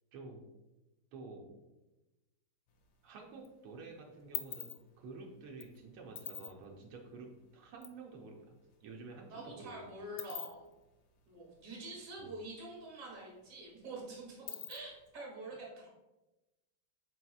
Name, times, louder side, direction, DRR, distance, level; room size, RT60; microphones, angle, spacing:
voice 1, 0.1-0.4 1.1-1.5 3.0-4.7 5.0-9.8 12.2-12.3, right 3 dB, 85° right, -1 dB, 1.5 m, -50 dB
sound 1, 2.7-3.5 3.8-8.0 8.3-8.4 8.6-12.4 12.7-12.8 13.2-15.1, left 10 dB, 85° left, 1.4 m, -46 dB
voice 2, 9.3-10.7 11.3-15.9, right 2 dB, 45° right, -3 dB, 1.5 m, -46 dB
4.2 x 4.1 x 2.3 m, 1.0 s
omnidirectional pair, 2.3 m